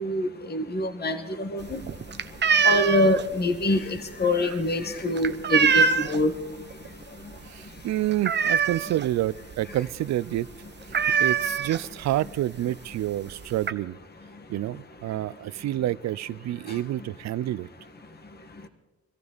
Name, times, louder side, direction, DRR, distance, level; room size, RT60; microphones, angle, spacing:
voice 1, 0.0-1.8 2.6-6.3, left 1 dB, 35° left, 7 dB, 1.6 m, -25 dB
sound 1, 1.6-6.4 6.7-7.0 7.3-7.4 7.8-9.1 9.5-9.6 9.9-10.1 10.4-10.5 10.9-12.1 12.9-13.0 13.3-13.7, right 6 dB, 35° right, 0.9 m, -24 dB
voice 2, 7.5-10.5 11.2-14.0 14.5-17.7, right 14 dB, 60° right, 20 dB, 0.5 m, -28 dB
24.0 x 14.5 x 4.1 m, 1.1 s
cardioid pair, 90°, 30 cm